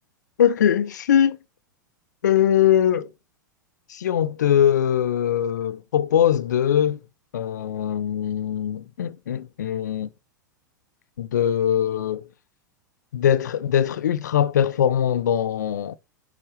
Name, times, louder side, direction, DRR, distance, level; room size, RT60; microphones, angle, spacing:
voice 1, 0.4-1.4 2.2-3.1 3.9-7.0 7.3-10.1 11.2-12.2 13.1-16.0, left 9 dB, 60° left, 0.6 m, -21 dB
10.0 x 3.8 x 3.2 m
figure-of-eight pair, 90°, 11 cm